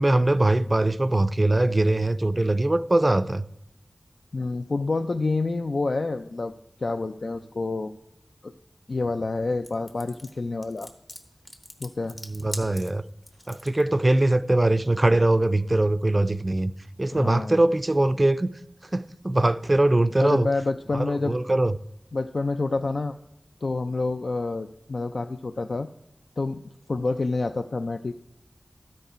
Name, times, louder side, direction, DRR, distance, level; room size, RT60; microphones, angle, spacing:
voice 1, 0.0-3.4 12.3-13.0 13.5-16.7 17.0-18.5 18.9-20.5 20.9-21.7, right 2 dB, 35° right, 0.3 m, -22 dB
voice 2, 4.3-6.5 6.8-8.0 8.4-8.5 8.9-10.9 11.8-12.1 17.1-17.5 20.2-21.3 22.1-23.1 23.6-25.9 26.4-26.6 26.9-28.1, left 3 dB, 75° left, 0.3 m, -28 dB
sound 1, 9.6-13.8, left 1 dB, 45° left, 1.0 m, -41 dB
13.0 x 5.4 x 5.0 m
wide cardioid pair, 70°, 0 cm